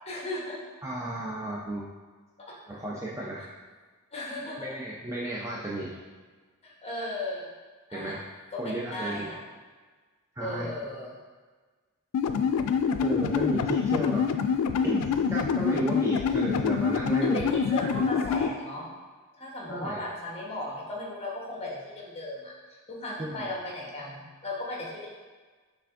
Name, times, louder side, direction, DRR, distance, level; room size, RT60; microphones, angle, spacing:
voice 1, 0.1-0.6 2.5-2.6 4.1-4.8 6.6-7.5 7.9-8.2 8.5-8.6 8.9-9.4 10.4-11.1 17.3-18.9 19.4-22.5 22.9-25.1, left 1 dB, 30° left, -4 dB, 0.9 m, -36 dB
voice 2, 0.8-1.9 2.7-3.5 4.6-6.0 7.9-8.2 8.6-9.3 10.4-10.7 13.0-14.3 14.8-18.3 19.7-20.1 23.2-23.4, right 2 dB, 15° right, -5 dB, 0.4 m, -33 dB
sound 1, 12.1-18.5, left 6 dB, 85° left, 0.3 m, -26 dB
5.7 x 3.4 x 2.4 m, 1.4 s
head